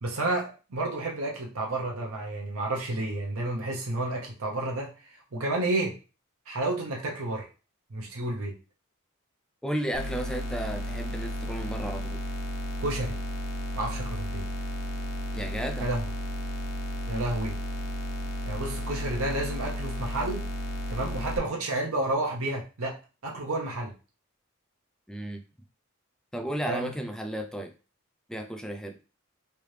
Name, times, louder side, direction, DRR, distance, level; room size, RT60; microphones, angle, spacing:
voice 1, 0.0-5.9 6.5-7.5 7.9-8.6 12.8-13.2 13.8-14.4 15.8-16.0 17.1-17.6 18.4-20.4 20.9-23.0 23.2-23.9 26.7-27.0, right 2 dB, 90° right, 0 dB, 0.8 m, -31 dB
voice 2, 9.6-12.2 15.3-15.9 25.1-25.4 26.3-27.7 28.3-29.0, right 1 dB, 5° left, 5 dB, 0.3 m, -33 dB
sound 1, 9.9-21.4, equal, 65° left, 0.7 m, -33 dB
3.2 x 2.7 x 3.2 m, 0.33 s
head